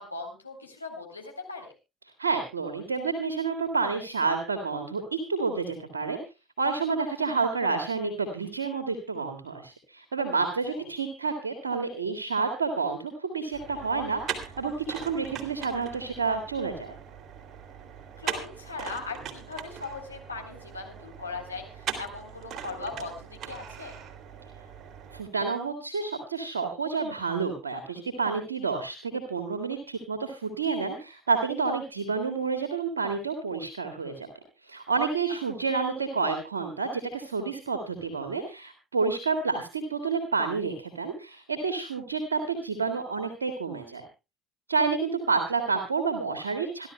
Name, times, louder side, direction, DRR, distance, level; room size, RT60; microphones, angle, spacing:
voice 1, 0.0-1.7 10.7-10.8 18.2-23.9, left 4 dB, 85° left, 1 dB, 3.6 m, -39 dB
voice 2, 2.2-6.2 6.6-17.0 25.1-34.3 34.6-44.0 44.7-46.9, right 4 dB, 80° right, 6 dB, 2.0 m, -29 dB
sound 1, 13.5-25.2, right 7 dB, 45° right, 2.9 m, -40 dB
27.0 x 12.0 x 2.3 m, 0.28 s
figure-of-eight pair, 55°, 0 cm